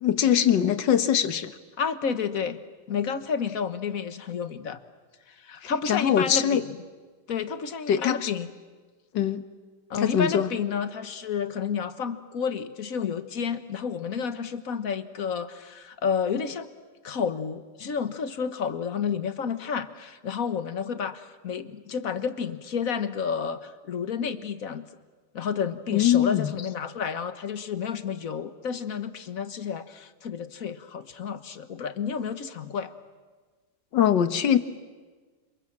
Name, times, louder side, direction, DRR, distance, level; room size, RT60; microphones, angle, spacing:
voice 1, 0.0-1.5 5.6-6.6 7.9-8.3 9.1-9.4 10.0-10.5 25.9-26.5 33.9-34.6, left 9 dB, 70° left, 11 dB, 1.8 m, -22 dB
voice 2, 1.8-2.6 2.9-4.8 5.3-6.6 7.3-8.5 9.9-16.7 17.0-24.9 25.3-32.9, left 6 dB, 50° left, 11 dB, 1.5 m, -30 dB
29.5 x 27.5 x 7.4 m, 1.4 s
omnidirectional pair, 2.0 m